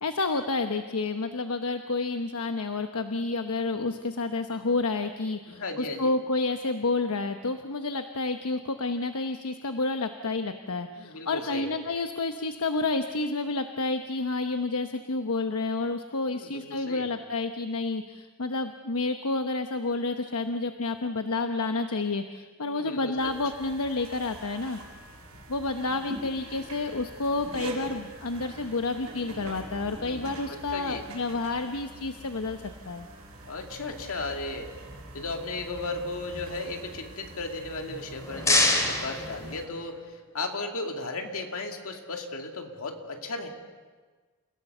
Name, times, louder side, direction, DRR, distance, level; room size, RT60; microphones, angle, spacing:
voice 1, 0.0-24.8 25.5-33.1, left 3 dB, 85° left, 7 dB, 1.0 m, -30 dB
voice 2, 5.5-6.2 11.0-11.7 16.3-17.1 22.7-23.3 30.0-31.1 33.5-34.7 35.1-43.5, left 2 dB, 70° left, 3 dB, 2.5 m, -35 dB
sound 1, 23.2-39.7, right 1 dB, 75° right, 6.4 m, -44 dB
sound 2, 37.9-40.1, left 2 dB, 15° left, 3.0 m, -27 dB
29.0 x 17.0 x 6.8 m, 1.4 s
head